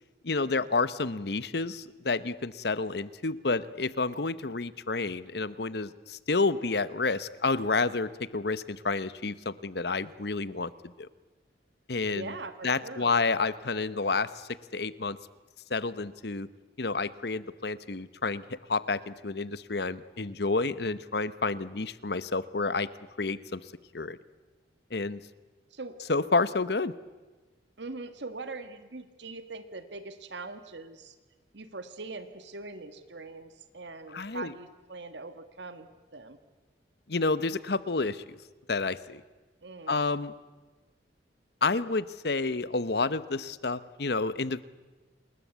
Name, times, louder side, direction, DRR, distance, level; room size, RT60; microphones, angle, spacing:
voice 1, 0.2-10.7 11.0-11.1 11.9-12.3 12.6-15.2 15.7-16.5 16.8-22.9 23.2-23.6 23.9-24.2 24.9-25.2 26.1-26.9 34.1-34.5 37.1-38.3 38.7-39.2 39.9-40.3 41.6-44.6, left 3 dB, 60° left, 16 dB, 0.9 m, -29 dB
voice 2, 12.0-13.2 25.7-26.0 27.8-31.1 31.5-36.4 39.6-40.0, right 3 dB, 70° right, 9 dB, 1.6 m, -42 dB
28.5 x 20.5 x 8.3 m, 1.3 s
head